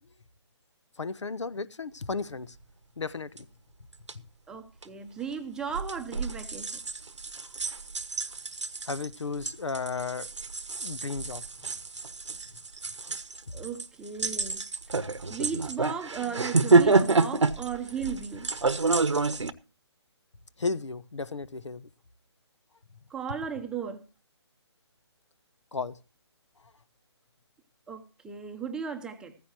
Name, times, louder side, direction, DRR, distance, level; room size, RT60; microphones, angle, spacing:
voice 1, 1.0-2.6 3.0-3.3 4.1-4.3 8.9-10.3 10.8-11.4 20.6-21.9 25.7-26.0, left 4 dB, 80° left, 1.0 m, -34 dB
sound 1, 3.4-3.5 3.9-4.1 4.8-4.9 5.7-19.5, right 3 dB, 90° right, 1.1 m, -28 dB
voice 2, 4.5-6.8 13.5-14.6 15.3-18.5 23.1-24.0 27.9-29.4, right 6 dB, 5° right, 0.7 m, -36 dB
15.5 x 15.0 x 2.9 m
figure-of-eight pair, 155°, 15 cm